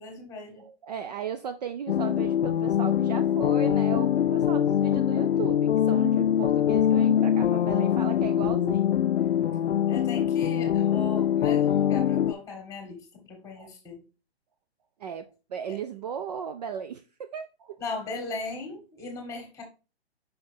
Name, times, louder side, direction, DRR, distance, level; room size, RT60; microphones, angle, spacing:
voice 1, 0.0-0.6 9.9-14.0 15.7-15.8 17.8-19.6, left 3 dB, 10° left, 1.8 m, -38 dB
voice 2, 0.6-8.9 9.5-9.6 13.6-13.7 15.0-17.8, right 8 dB, 40° right, 0.4 m, -36 dB
sound 1, 1.9-12.3, left 10 dB, 75° left, 0.5 m, -23 dB
5.6 x 5.5 x 3.4 m
hypercardioid pair, 135°, 33 cm